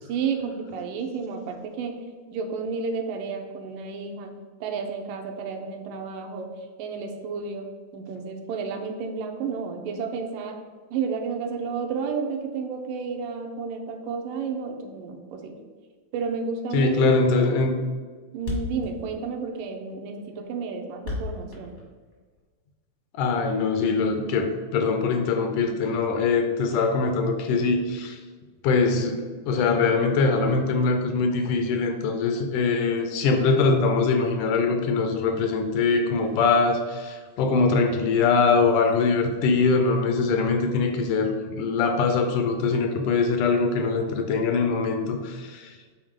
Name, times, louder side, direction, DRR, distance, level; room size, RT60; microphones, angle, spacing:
voice 1, 0.0-2.0 2.3-4.3 4.6-6.5 6.8-10.6 10.9-15.6 16.1-17.2 18.3-21.7, right 5 dB, 80° right, 4 dB, 2.3 m, -31 dB
voice 2, 16.7-17.8 23.1-28.2 28.6-45.8, left 4 dB, 80° left, 6 dB, 2.0 m, -23 dB
Thump thud, 17.8-17.9 18.1-18.2 18.4-22.4, left 3 dB, 50° left, 0.8 m, -34 dB
8.6 x 4.2 x 3.7 m, 1.5 s
omnidirectional pair, 3.8 m